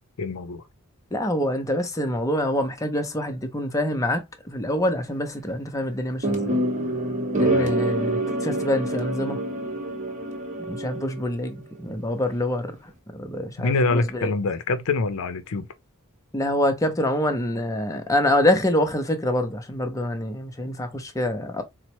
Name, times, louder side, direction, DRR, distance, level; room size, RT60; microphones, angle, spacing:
voice 1, 0.2-0.6 7.4-7.7 13.6-15.7, left 3 dB, 65° left, 0.5 m, -25 dB
voice 2, 1.1-6.6 7.4-9.4 10.7-12.7 13.1-14.3 16.3-21.6, left 1 dB, 15° left, 0.6 m, -25 dB
sound 1, 6.2-11.3, right 1 dB, 35° right, 0.9 m, -26 dB
4.1 x 2.0 x 2.8 m
head